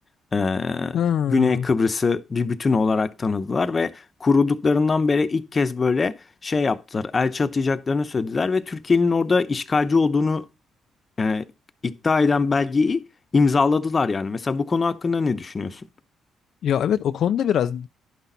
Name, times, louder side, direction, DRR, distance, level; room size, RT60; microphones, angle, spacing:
voice 1, 0.3-1.0 1.3-6.2 6.4-10.4 11.2-11.5 11.8-13.1 13.3-15.8, left 4 dB, 30° left, 0.8 m, -22 dB
voice 2, 0.9-1.7 16.6-17.9, left 9 dB, 70° left, 0.4 m, -22 dB
11.0 x 5.9 x 4.0 m
cardioid pair, 90°, 0 cm